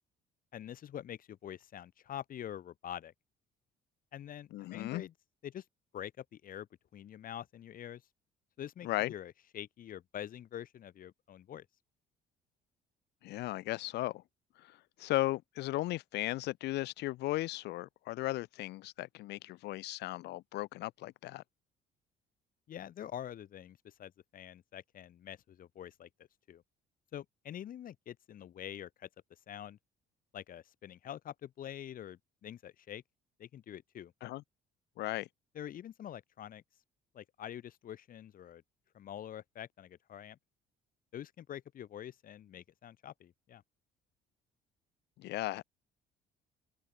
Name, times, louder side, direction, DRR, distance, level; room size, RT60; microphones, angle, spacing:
voice 1, 0.5-3.1 4.1-5.1 5.4-5.6 5.9-6.7 6.9-8.0 8.6-11.7 22.7-26.6 27.1-29.8 30.3-33.0 33.4-34.1 35.5-36.6 37.1-38.6 38.9-40.4 41.1-43.6, left 10 dB, 55° left, 4.0 m, -46 dB
voice 2, 4.5-5.0 8.8-9.1 13.2-14.2 14.6-21.4 34.2-34.4 35.0-35.3 45.2-45.6, left 17 dB, 80° left, 4.0 m, -36 dB
open air
cardioid pair, 110°, 17 cm